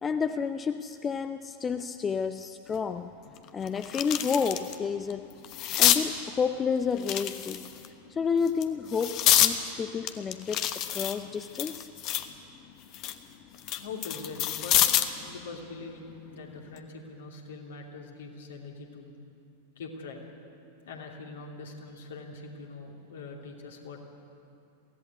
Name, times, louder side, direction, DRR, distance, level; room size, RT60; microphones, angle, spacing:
voice 1, 0.0-3.1 3.5-5.3 5.8-7.7 8.1-11.9, left 6 dB, 20° left, 10 dB, 0.6 m, -30 dB
sound 1, 2.7-2.8 3.3-4.8 5.1-6.0 7.0-7.9 8.5-9.5 10.1-12.3 12.7-15.2 16.6-16.8, left 12 dB, 40° left, 1.1 m, -27 dB
voice 2, 13.7-15.0 15.2-19.1 19.8-20.3 20.9-24.1, left 4 dB, 60° left, 1 dB, 2.9 m, -43 dB
23.0 x 16.5 x 8.2 m, 2.6 s
figure-of-eight pair, 90°, 0 cm